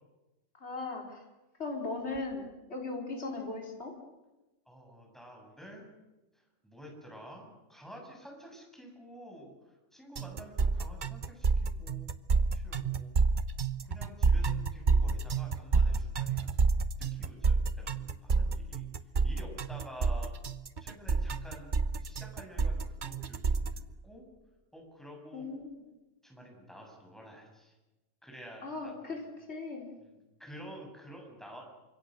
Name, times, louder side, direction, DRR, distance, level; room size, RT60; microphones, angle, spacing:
voice 1, 0.5-1.2 1.6-2.4 2.7-3.9 25.3-25.8 28.6-29.2 29.5-29.9, left 3 dB, 55° left, 1 dB, 3.9 m, -38 dB
voice 2, 4.7-5.9 6.6-13.1 13.8-16.7 17.1-18.9 19.2-20.3 20.8-24.2 24.7-25.4 26.2-27.7 28.2-29.2 30.0-31.7, equal, ahead, 0 dB, 7.8 m, -50 dB
sound 1, 10.2-23.8, right 4 dB, 40° right, 1.0 m, -28 dB
28.5 x 25.5 x 6.6 m, 1.1 s
omnidirectional pair, 1.3 m